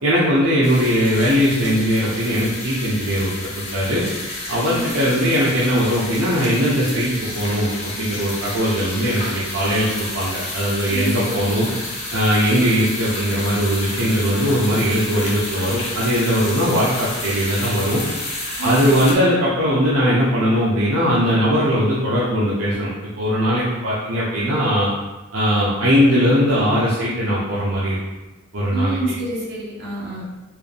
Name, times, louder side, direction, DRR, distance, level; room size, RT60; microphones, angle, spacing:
voice 1, 0.0-4.0 4.5-11.7 12.1-18.0 18.6-24.9 25.3-28.0 28.5-29.0, equal, 70° right, -8 dB, 0.8 m, -19 dB
sound 1, 0.6-19.1, left 2 dB, 30° left, 1.1 m, -30 dB
voice 2, 4.6-5.2 10.9-11.8 18.6-19.2 28.7-30.2, right 2 dB, 55° right, -6 dB, 1.3 m, -28 dB
4.6 x 2.6 x 3.4 m, 1.1 s
head